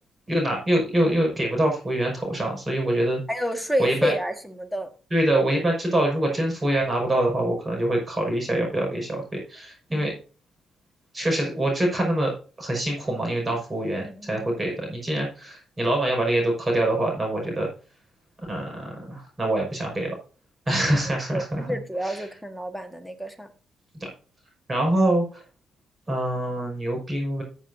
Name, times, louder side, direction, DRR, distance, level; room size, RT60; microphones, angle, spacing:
voice 1, 0.3-3.2 3.8-4.1 5.1-10.2 11.1-12.3 12.6-17.7 18.5-20.1 20.7-21.7 22.0-22.2 24.0-24.1 24.7-25.4 26.1-27.4, right 1 dB, 25° right, 5.5 m, -25 dB
voice 2, 3.3-4.9 14.0-14.5 20.9-23.5 24.9-25.0, equal, ahead, 1.7 m, -30 dB
14.5 x 7.4 x 2.7 m
cardioid pair, 90°, 0 cm